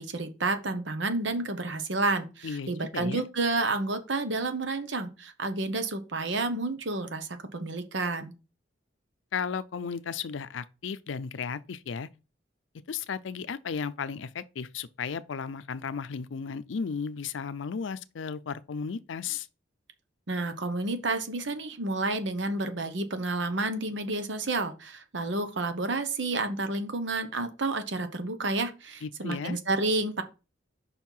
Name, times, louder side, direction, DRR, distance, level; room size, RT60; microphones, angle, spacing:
voice 1, 0.0-8.3 20.3-30.2, right 2 dB, 75° right, 1.0 m, -30 dB
voice 2, 2.4-3.3 9.3-12.1 12.9-19.5 29.0-29.6, left 6 dB, 90° left, 0.5 m, -34 dB
5.5 x 4.6 x 5.5 m
head